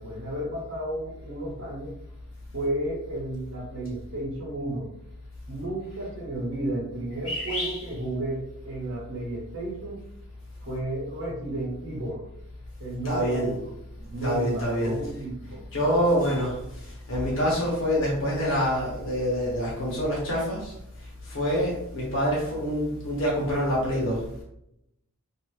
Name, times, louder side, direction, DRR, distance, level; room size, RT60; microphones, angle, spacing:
voice 1, 0.0-2.0 2.5-4.9 5.5-10.0 10.6-12.3 12.8-13.7 14.1-15.7, right 1 dB, 65° right, -6 dB, 1.0 m, -33 dB
voice 2, 7.2-7.8 13.0-13.5 14.2-15.0 15.7-16.6 17.1-20.7 21.3-24.2, equal, 60° left, -5 dB, 1.3 m, -26 dB
2.8 x 2.8 x 3.1 m, 0.78 s
head